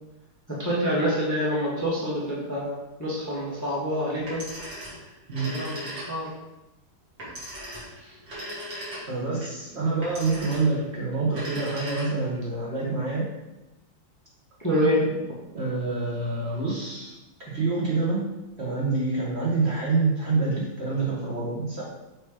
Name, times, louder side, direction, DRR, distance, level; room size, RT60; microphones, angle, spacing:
voice 1, 0.5-4.5 5.5-6.3 8.0-8.2 14.6-15.2, equal, 10° left, -7 dB, 1.2 m, -27 dB
Telephone, 4.2-6.4 7.2-9.3 10.0-10.8 11.2-12.4, equal, 85° right, 2.9 m, -37 dB
voice 2, 9.1-13.3 15.5-17.1 17.5-18.3 18.6-21.8, right 3 dB, 35° right, -6 dB, 1.6 m, -26 dB
6.6 x 3.2 x 4.9 m, 1.0 s
omnidirectional pair, 2.0 m